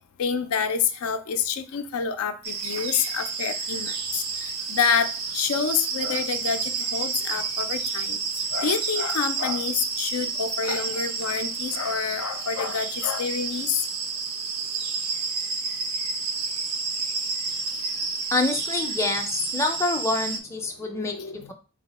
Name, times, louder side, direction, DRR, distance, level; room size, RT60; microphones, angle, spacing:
voice 1, 0.2-8.2 8.5-13.8 20.8-21.5, left 6 dB, 80° left, 8 dB, 0.4 m, -28 dB
sound 1, 2.4-20.4, right 5 dB, 80° right, 0.7 m, -30 dB
voice 2, 18.3-19.3 19.5-21.2, left 2 dB, 10° left, 2 dB, 0.4 m, -26 dB
4.0 x 2.1 x 4.1 m, 0.35 s
head